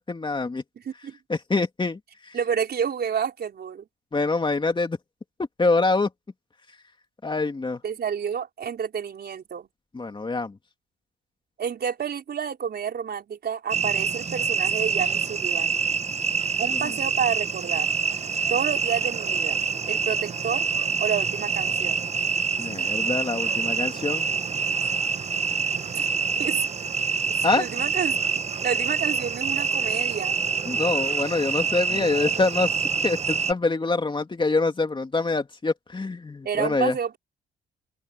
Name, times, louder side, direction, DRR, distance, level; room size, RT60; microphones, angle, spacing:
voice 1, 0.0-0.6 1.3-2.0 2.3-2.4 4.1-5.0 5.6-6.1 7.2-7.8 9.9-10.6 22.6-24.3 27.4-27.7 30.7-32.7 33.0-37.0, left 3 dB, 25° left, 2.7 m, -25 dB
voice 2, 0.8-1.2 2.3-3.9 7.8-9.7 11.6-15.8 16.6-17.9 18.5-19.6 19.9-20.6 21.0-22.0 25.9-26.0 26.4-26.6 27.6-28.2 28.6-30.4 31.9-32.4 36.4-37.2, right 7 dB, 55° right, 4.5 m, -29 dB
sound 1, 13.7-33.5, right 5 dB, 35° right, 0.9 m, -26 dB
open air
cardioid pair, 90°, 20 cm